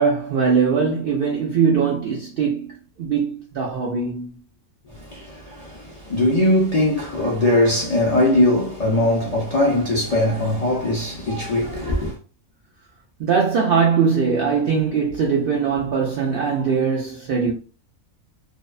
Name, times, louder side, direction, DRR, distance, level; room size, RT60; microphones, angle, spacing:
voice 1, 0.0-4.4 13.2-17.5, right 6 dB, 75° right, 0.5 m, -21 dB
voice 2, 4.9-12.1, left 1 dB, 75° left, 0.3 m, -20 dB
2.6 x 2.1 x 2.3 m
omnidirectional pair, 1.5 m